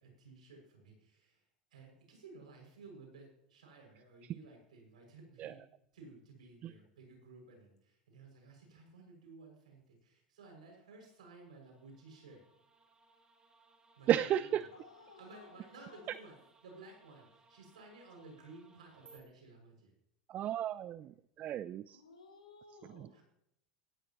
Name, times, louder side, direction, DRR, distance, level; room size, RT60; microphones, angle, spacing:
voice 1, 0.0-1.4 1.7-5.6 5.9-12.4 14.0-14.6 15.2-16.4 16.6-19.9 23.1-23.2, right 3 dB, 75° right, 1 dB, 6.5 m, -55 dB
sound 1, 11.1-19.2, right 3 dB, 20° right, 2.2 m, -66 dB
voice 2, 14.1-14.7 20.3-22.0 22.9-23.1, right 11 dB, 40° right, 17 dB, 0.5 m, -33 dB
voice 3, 14.7-16.1 20.7-20.8 21.9-23.2, left 4 dB, 80° left, 0 dB, 5.3 m, -58 dB
17.0 x 15.5 x 3.1 m, 0.77 s
hypercardioid pair, 80°, 4 cm